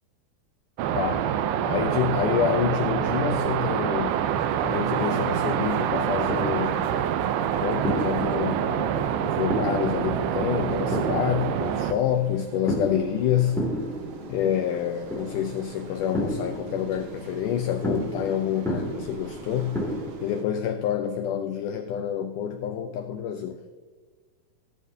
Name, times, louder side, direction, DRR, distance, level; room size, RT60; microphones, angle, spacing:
sound 1, 0.8-11.9, right 9 dB, 90° right, 2.6 m, -26 dB
voice 1, 0.9-1.3 1.7-4.2 4.6-6.9 7.6-13.6 14.3-23.6, left 9 dB, 90° left, 8 dB, 1.8 m, -28 dB
sound 2, 4.1-20.4, right 6 dB, 65° right, 2.1 m, -48 dB
sound 3, 5.6-20.1, equal, ahead, 1.4 m, -34 dB
16.5 x 11.0 x 2.7 m, 1.4 s
omnidirectional pair, 4.3 m